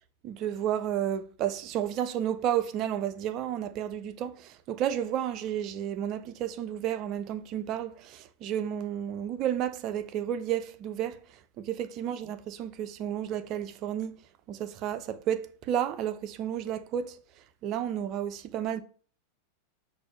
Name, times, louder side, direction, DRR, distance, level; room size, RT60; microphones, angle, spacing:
voice 1, 0.2-11.2 11.6-14.1 14.5-17.2 17.6-18.8, right 10 dB, 40° right, 0.4 m, -32 dB
6.0 x 2.4 x 3.0 m
figure-of-eight pair, 90°, 0 cm